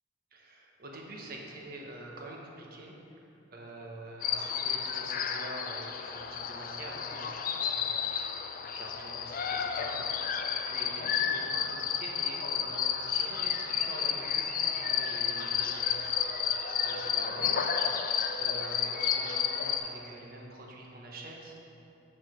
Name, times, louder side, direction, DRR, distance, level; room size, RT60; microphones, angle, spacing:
voice 1, 0.3-2.9 3.5-7.4 7.7-8.1 8.8-16.2 16.8-18.1 18.4-21.6, right 1 dB, 50° right, -1 dB, 1.0 m, -46 dB
sound 1, 4.2-19.8, left 7 dB, 45° left, 0.4 m, -31 dB
5.8 x 4.9 x 6.3 m, 2.8 s
head